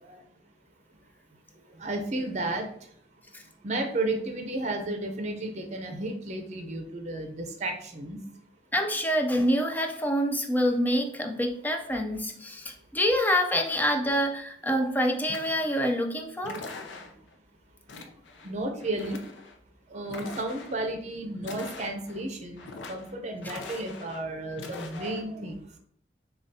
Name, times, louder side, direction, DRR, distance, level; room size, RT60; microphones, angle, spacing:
voice 1, 1.8-2.7 3.6-8.2 18.4-19.2 19.9-25.6, right 2 dB, 40° right, 4 dB, 0.6 m, -33 dB
voice 2, 8.7-16.6 23.4-23.6, equal, 10° left, 3 dB, 0.4 m, -26 dB
sound 1, 15.3-15.9 16.4-17.3 17.9-18.5 18.8-19.6 20.0-20.8 21.4-22.2 22.6-23.1 23.4-24.2 24.5-25.2, left 3 dB, 90° left, 0.6 m, -42 dB
6.8 x 2.4 x 2.7 m, 0.65 s
head